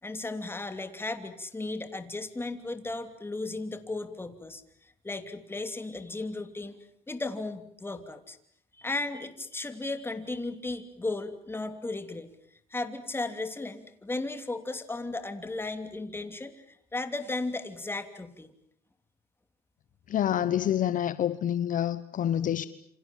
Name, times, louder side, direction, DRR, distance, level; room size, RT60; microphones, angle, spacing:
voice 1, 0.0-6.8 7.1-8.4 8.7-12.3 12.7-18.5, left 2 dB, 15° left, 2.9 m, -35 dB
voice 2, 20.1-22.7, left 10 dB, 50° left, 1.1 m, -27 dB
28.0 x 26.5 x 7.4 m
cardioid pair, 110°, 17 cm